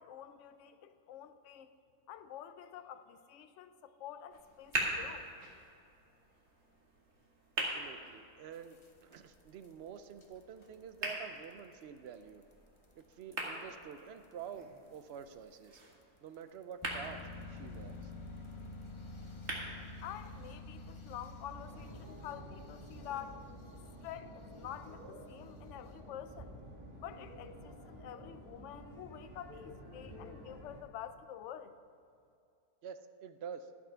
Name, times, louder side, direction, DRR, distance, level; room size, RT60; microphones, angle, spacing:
voice 1, 0.0-1.7 2.1-5.3 20.0-26.5 27.0-31.7, left 10 dB, 65° left, 11 dB, 0.8 m, -48 dB
sound 1, 4.3-20.3, right 1 dB, 45° right, 2.1 m, -44 dB
voice 2, 7.6-12.5 13.0-15.8 16.2-17.2 17.5-18.1 32.8-33.7, right 7 dB, 65° right, 10 dB, 0.6 m, -48 dB
sound 2, 8.5-9.7 10.0-10.2 10.6-10.8 11.1-11.2 11.4-11.5 12.1-12.2 13.0-13.1 13.5-13.6 14.9-15.0 15.6-15.7 16.8-25.1, left 2 dB, 30° left, 0.6 m, -49 dB
sound 3, 21.5-30.8, equal, 20° right, 1.4 m, -51 dB
12.5 x 8.0 x 5.6 m, 2.5 s
omnidirectional pair, 1.6 m